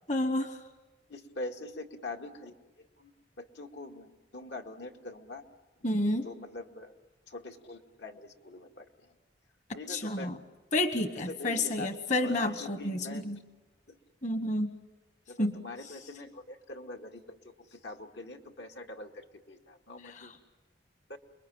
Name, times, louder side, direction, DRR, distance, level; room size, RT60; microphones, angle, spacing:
voice 1, 0.1-0.6 5.8-6.3 9.9-10.4 10.7-13.4 14.2-14.7 15.4-15.6 20.0-20.4, left 1 dB, 45° left, 8 dB, 1.2 m, -30 dB
voice 2, 1.1-3.1 3.4-5.4 6.2-6.9 7.3-8.9 9.7-10.3 11.3-11.9 12.2-13.2 13.9-14.0 15.3-20.3 21.1-21.2, left 2 dB, 80° left, 3 dB, 2.2 m, -43 dB
30.0 x 22.0 x 8.9 m, 1.2 s
head